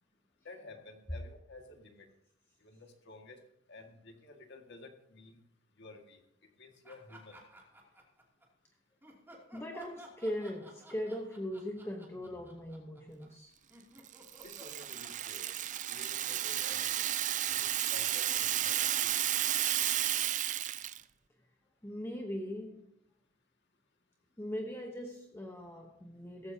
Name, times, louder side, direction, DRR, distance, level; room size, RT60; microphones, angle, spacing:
voice 1, 0.4-2.1 2.6-3.4 3.7-5.4 5.8-6.2 6.6-7.3 14.4-15.5 15.9-17.0 17.4-19.2, left 2 dB, 55° left, 4 dB, 2.0 m, -52 dB
sound 1, 6.8-8.5 9.0-17.3, right 1 dB, 10° right, 2.7 m, -55 dB
voice 2, 9.5-13.6 21.8-22.9 24.4-26.5, equal, 10° left, 2 dB, 1.0 m, -40 dB
Rattle (instrument), 14.1-21.0, right 12 dB, 35° right, 0.4 m, -32 dB
16.5 x 15.0 x 2.8 m, 0.82 s
head